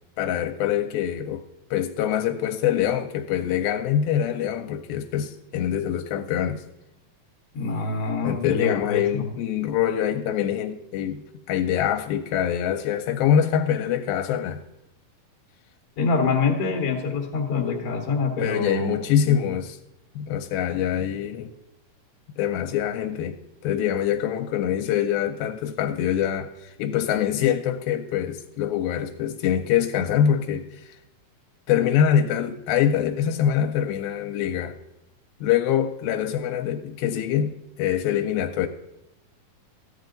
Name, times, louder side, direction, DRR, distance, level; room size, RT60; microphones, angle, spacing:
voice 1, 0.2-1.4 1.7-6.6 8.2-11.2 11.5-14.6 18.4-19.8 20.2-21.5 22.4-23.3 23.6-30.9 31.7-34.7 35.4-38.7, left 9 dB, 85° left, 6 dB, 2.4 m, -24 dB
voice 2, 7.5-9.3 16.0-19.4, left 4 dB, 65° left, 0 dB, 1.4 m, -25 dB
14.0 x 9.6 x 3.8 m, 0.86 s
omnidirectional pair, 4.3 m